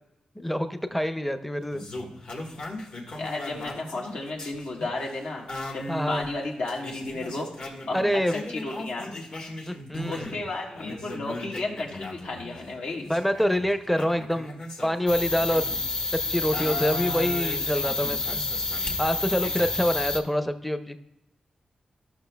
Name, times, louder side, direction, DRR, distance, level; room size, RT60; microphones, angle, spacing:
voice 1, 0.4-1.8 5.9-6.3 7.9-8.3 9.7-10.3 13.1-14.5 14.8-15.6 16.3-18.4 19.0-21.0, equal, 5° left, 9 dB, 0.5 m, -26 dB
sound 1, 1.7-10.5 10.7-16.0 16.5-19.7, left 1 dB, 55° left, 1.4 m, -38 dB
voice 2, 3.1-5.4 5.7-7.5 7.9-8.0 8.3-9.1 10.0-13.1, left 2 dB, 85° left, -1 dB, 1.5 m, -33 dB
sound 2, 15.1-20.2, left 3 dB, 40° left, 0.8 m, -29 dB
13.5 x 6.0 x 2.3 m, 0.92 s
wide cardioid pair, 125°, 2 cm